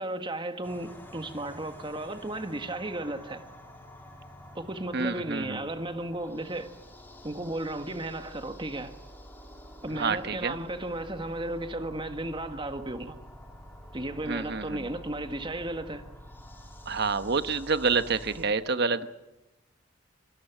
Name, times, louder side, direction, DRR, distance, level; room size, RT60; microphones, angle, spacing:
voice 1, 0.0-3.4 4.5-6.7 7.2-8.9 9.8-13.2 13.9-16.0, right 1 dB, 25° right, 1.7 m, -34 dB
sound 1, 0.6-18.5, equal, 10° left, 3.7 m, -48 dB
voice 2, 4.9-5.6 9.9-10.6 14.3-14.8 16.9-19.1, right 4 dB, 55° right, 1.1 m, -28 dB
25.0 x 18.5 x 7.3 m
head